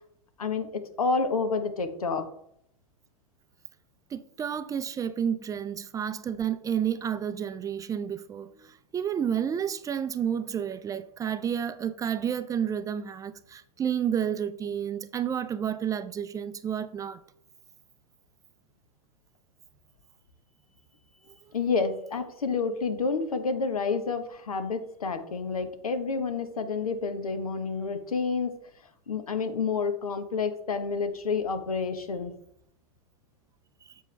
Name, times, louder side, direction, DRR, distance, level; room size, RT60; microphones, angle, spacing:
voice 1, 0.4-2.3 21.5-28.5 29.1-32.3, left 4 dB, 85° left, 1.1 m, -29 dB
voice 2, 4.1-17.2 33.9-34.0, right 8 dB, 20° right, 0.4 m, -30 dB
7.6 x 7.3 x 3.3 m
hypercardioid pair, 105°, 18 cm